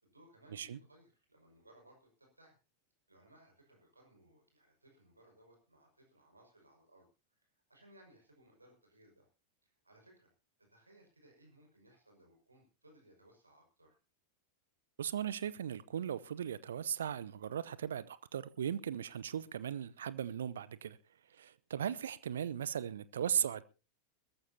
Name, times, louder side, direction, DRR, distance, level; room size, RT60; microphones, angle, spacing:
voice 1, 0.0-2.6 3.1-9.3 9.6-10.3 10.7-14.0, right 1 dB, 80° right, 5.6 m, -64 dB
voice 2, 15.0-21.0 21.4-23.6, right 9 dB, 65° right, 0.7 m, -37 dB
21.5 x 14.0 x 2.8 m
figure-of-eight pair, 90°, 0 cm